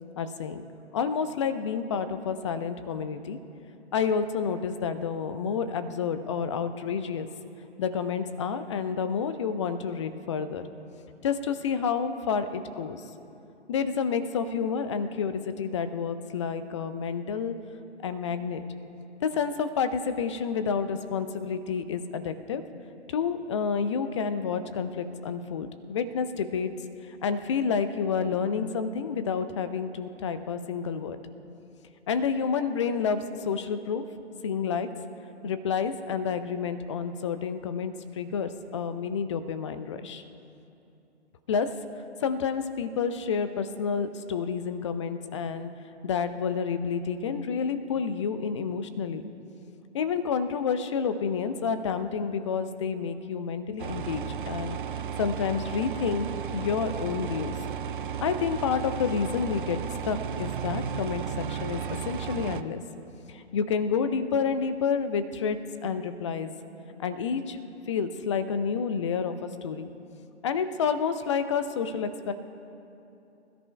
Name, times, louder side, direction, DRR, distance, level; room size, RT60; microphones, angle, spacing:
voice 1, 0.2-0.6 0.9-3.4 3.9-7.3 7.8-10.6 11.2-13.0 13.7-17.5 18.0-18.6 19.2-22.6 23.1-26.7 27.2-31.2 32.1-34.0 34.4-34.9 35.4-40.2 41.5-41.7 42.2-45.7 46.0-49.3 49.9-56.3 56.5-57.6 58.2-59.8 60.0-62.8 63.3-66.5 67.0-67.6 67.9-69.9 70.4-72.3, left 6 dB, 25° left, 11 dB, 0.5 m, -29 dB
sound 1, 53.8-62.6, right 8 dB, 50° right, 0.5 m, -34 dB
25.5 x 13.5 x 2.2 m, 2.8 s
figure-of-eight pair, 120°, 34 cm